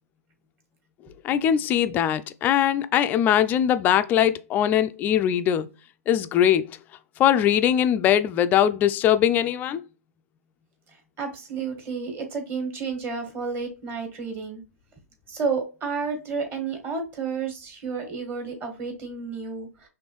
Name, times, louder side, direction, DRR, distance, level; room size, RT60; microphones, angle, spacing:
voice 1, 1.2-5.7 6.1-6.7 7.2-9.8, left 10 dB, 20° left, 0.4 m, -21 dB
voice 2, 11.2-14.6 15.3-19.9, right 5 dB, 25° right, 1.6 m, -31 dB
5.3 x 3.2 x 3.0 m
hypercardioid pair, 135°, 9 cm